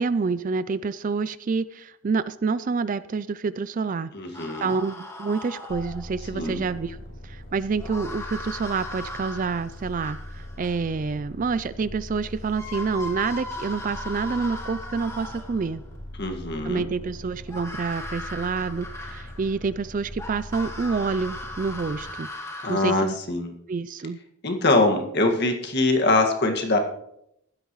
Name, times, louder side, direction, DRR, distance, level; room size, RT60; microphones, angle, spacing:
voice 1, 0.0-4.1 4.6-15.8 16.6-22.3 22.7-23.2 23.7-24.2, right 4 dB, 35° right, 16 dB, 0.3 m, -28 dB
voice 2, 4.1-4.7 6.3-6.7 16.2-16.9 22.6-23.5 24.4-26.8, left 2 dB, 50° left, 4 dB, 1.9 m, -23 dB
sound 1, 4.3-6.2 7.8-10.8 12.1-12.2 12.5-15.7 17.5-19.6 20.2-22.8, left 1 dB, 10° left, 1.5 m, -38 dB
sound 2, 5.7-22.1, left 1 dB, 65° left, 4.1 m, -41 dB
16.0 x 12.0 x 3.1 m, 0.76 s
head